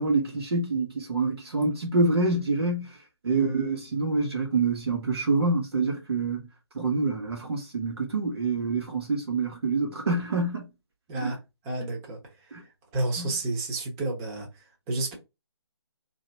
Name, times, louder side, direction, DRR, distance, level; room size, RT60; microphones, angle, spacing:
voice 1, 0.0-2.9 3.2-6.4 6.7-10.7 11.2-11.3 12.5-12.6 13.2-13.3, right 3 dB, 65° right, 1.3 m, -26 dB
voice 2, 3.3-3.7 11.1-11.4 11.6-12.2 12.9-14.5 14.9-15.1, right 2 dB, 20° right, 1.0 m, -30 dB
2.9 x 2.7 x 4.4 m
figure-of-eight pair, 150°, 14 cm